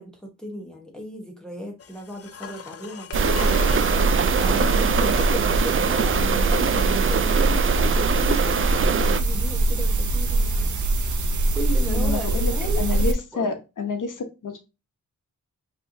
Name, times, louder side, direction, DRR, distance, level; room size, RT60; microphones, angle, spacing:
voice 1, 0.0-3.9 4.4-7.6 8.0-10.7 11.5-13.0 13.3-13.5, equal, ahead, 1.1 m, -36 dB
sound 1, 1.8-5.4 8.3-8.4, left 7 dB, 50° left, 0.5 m, -38 dB
sound 2, 3.1-9.2, right 7 dB, 40° right, 0.4 m, -24 dB
sound 3, 3.1-13.1, right 2 dB, 65° right, 0.8 m, -23 dB
voice 2, 11.9-14.6, left 4 dB, 75° left, 1.0 m, -29 dB
5.3 x 3.1 x 2.7 m
wide cardioid pair, 85°, 31 cm